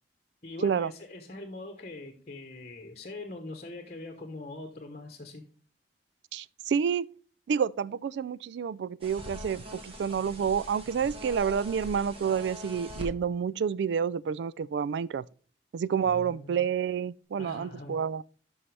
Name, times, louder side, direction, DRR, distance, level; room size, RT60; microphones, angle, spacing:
voice 1, 0.4-5.4 16.0-16.6 17.4-18.0, left 2 dB, 40° left, 1.0 m, -42 dB
voice 2, 6.3-7.1 7.5-15.2 15.7-18.2, right 7 dB, 70° right, 0.3 m, -29 dB
sound 1, 9.0-13.1, equal, 30° right, 1.7 m, -42 dB
11.0 x 5.5 x 3.3 m
head